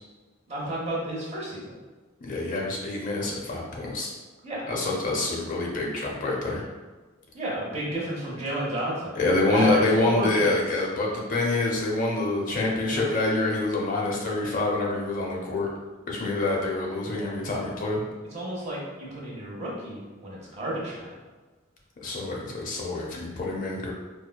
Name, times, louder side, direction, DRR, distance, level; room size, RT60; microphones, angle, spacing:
voice 1, 0.5-1.7 4.4-4.7 7.3-9.8 10.0-10.6 12.7-13.0 18.3-21.1, right 1 dB, 35° right, -5 dB, 0.8 m, -32 dB
voice 2, 2.2-4.1 4.7-6.6 9.2-15.7 16.1-18.0 22.0-23.9, left 2 dB, 40° left, -2 dB, 0.5 m, -26 dB
4.4 x 2.2 x 2.2 m, 1.3 s
head